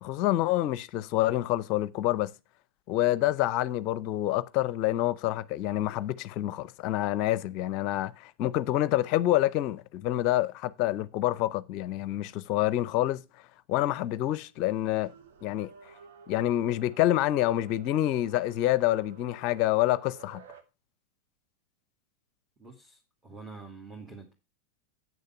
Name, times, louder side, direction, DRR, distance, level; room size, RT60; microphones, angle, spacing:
voice 1, 0.0-2.3 2.9-13.2 13.7-15.1 15.4-15.7 16.3-20.4, left 14 dB, 40° left, 0.6 m, -27 dB
sound 1, 14.9-20.6, right 5 dB, 60° right, 1.8 m, -52 dB
voice 2, 22.6-24.3, right 4 dB, 15° right, 2.5 m, -46 dB
9.1 x 6.6 x 5.7 m
figure-of-eight pair, 90°, 0 cm